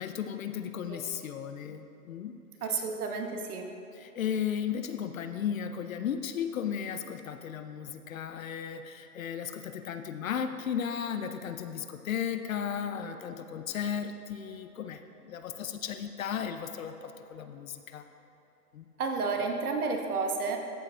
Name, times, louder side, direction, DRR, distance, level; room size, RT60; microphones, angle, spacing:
voice 1, 0.0-2.4 3.9-18.0 18.7-18.8, left 8 dB, 55° left, 8 dB, 0.6 m, -35 dB
voice 2, 2.6-3.7 19.0-20.6, right 4 dB, 65° right, 3 dB, 1.2 m, -31 dB
14.0 x 7.6 x 2.3 m, 3.0 s
hypercardioid pair, 145°, 48 cm